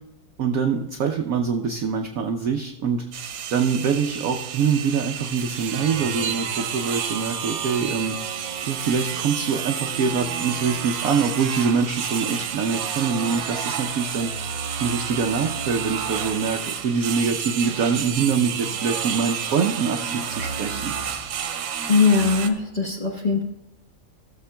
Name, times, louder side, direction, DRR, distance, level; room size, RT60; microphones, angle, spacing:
voice 1, 0.4-3.1 3.5-8.2 8.6-14.3 14.8-21.0, right 5 dB, 65° right, 4 dB, 0.9 m, -24 dB
sound 1, 3.1-22.5, right 8 dB, 90° right, 1.5 m, -30 dB
voice 2, 21.9-23.4, left 5 dB, 25° left, -1 dB, 1.2 m, -20 dB
16.5 x 7.1 x 2.2 m, 1.0 s
omnidirectional pair, 2.0 m